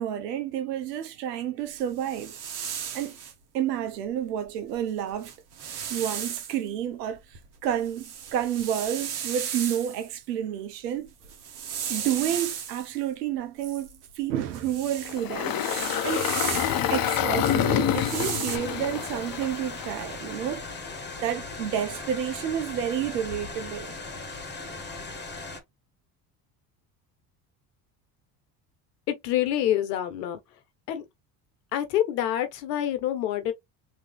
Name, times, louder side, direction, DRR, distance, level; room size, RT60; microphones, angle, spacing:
voice 1, 0.0-2.4 2.9-3.2 3.5-5.3 5.9-11.1 11.9-13.9 14.1-16.2 16.9-20.6 21.2-23.9, right 10 dB, 90° right, 0.9 m, -30 dB
sound 1, 1.8-3.3 4.7-4.8 5.1-6.6 7.2-10.2 11.1-13.0 13.6-17.0 17.7-18.6, right 8 dB, 55° right, 1.5 m, -35 dB
Engine, 15.0-20.3, left 10 dB, 45° left, 0.8 m, -27 dB
sound 2, 18.5-25.6, left 3 dB, 20° left, 1.5 m, -38 dB
voice 2, 29.1-30.4 30.9-31.0 31.7-33.5, left 11 dB, 85° left, 1.1 m, -26 dB
3.6 x 3.1 x 3.2 m
hypercardioid pair, 75°, 47 cm